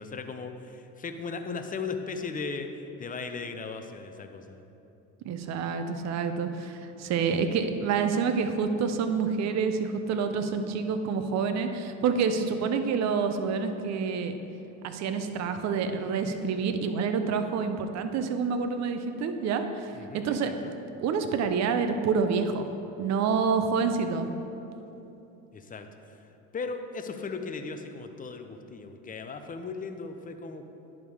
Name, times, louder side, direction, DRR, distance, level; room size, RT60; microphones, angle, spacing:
voice 1, 0.0-4.6 19.9-20.7 25.5-26.3 26.5-30.6, left 4 dB, 25° left, 7 dB, 0.5 m, -37 dB
voice 2, 5.2-14.4 14.8-20.5 21.0-22.7 23.0-24.3, right 5 dB, 45° right, 7 dB, 0.6 m, -28 dB
10.5 x 3.7 x 4.7 m, 2.9 s
supercardioid pair, 90°, 37 cm